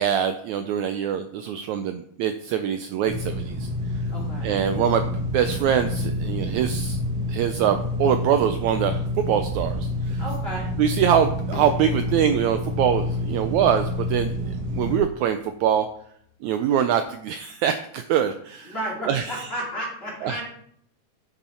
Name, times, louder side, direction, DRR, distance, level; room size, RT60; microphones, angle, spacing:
voice 1, 0.0-3.7 4.4-5.1 5.3-7.0 7.3-10.2 10.8-14.3 14.7-15.9 16.4-18.7 19.1-19.4 20.2-20.4, right 9 dB, 80° right, 8 dB, 1.6 m, -24 dB
sound 1, 3.1-15.0, left 1 dB, 65° right, 0.9 m, -28 dB
voice 2, 4.1-4.6 10.2-10.7 18.6-20.4, right 1 dB, 20° left, -4 dB, 2.7 m, -32 dB
sound 2, 11.5-17.1, left 6 dB, 75° left, 2.5 m, -45 dB
9.2 x 7.1 x 4.3 m, 0.66 s
omnidirectional pair, 3.8 m